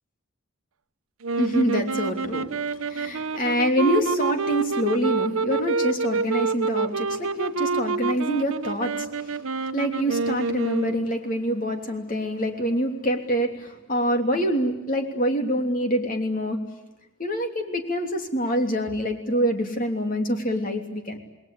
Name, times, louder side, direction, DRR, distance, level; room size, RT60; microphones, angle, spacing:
sound 1, 1.2-11.3, right 4 dB, 85° right, 0.9 m, -27 dB
voice 1, 1.4-9.5 9.7-16.6 17.2-21.2, equal, 40° left, 5 dB, 3.1 m, -26 dB
28.5 x 20.5 x 8.5 m, 1.0 s
head